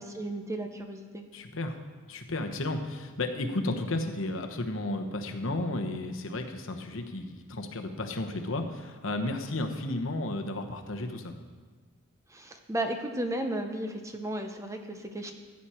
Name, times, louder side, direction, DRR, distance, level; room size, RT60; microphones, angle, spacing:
voice 1, 0.0-1.2 12.3-15.3, right 1 dB, 15° right, 5 dB, 0.7 m, -34 dB
voice 2, 1.3-1.8 2.1-11.4, left 2 dB, 65° left, 5 dB, 1.0 m, -33 dB
15.0 x 8.5 x 4.4 m, 1.5 s
head